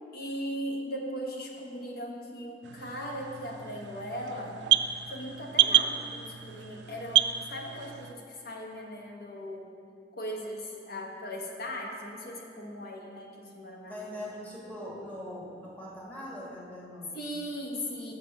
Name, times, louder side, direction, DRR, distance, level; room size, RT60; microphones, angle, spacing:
voice 1, 0.1-4.8 5.1-9.7 10.1-14.1 17.1-18.1, equal, 60° left, 0 dB, 1.1 m, -38 dB
sound 1, 2.6-8.1, right 12 dB, 70° right, 0.3 m, -29 dB
voice 2, 13.9-17.1, left 1 dB, 10° left, -6 dB, 1.6 m, -41 dB
6.7 x 5.7 x 6.4 m, 2.4 s
head